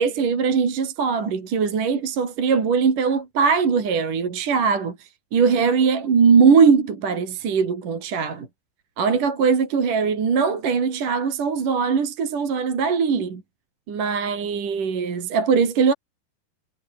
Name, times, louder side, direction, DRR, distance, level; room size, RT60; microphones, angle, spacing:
voice 1, 0.0-8.5 9.0-13.4 13.9-15.9, right 5 dB, 45° right, 5.0 m, -21 dB
omnidirectional pair, 5.6 m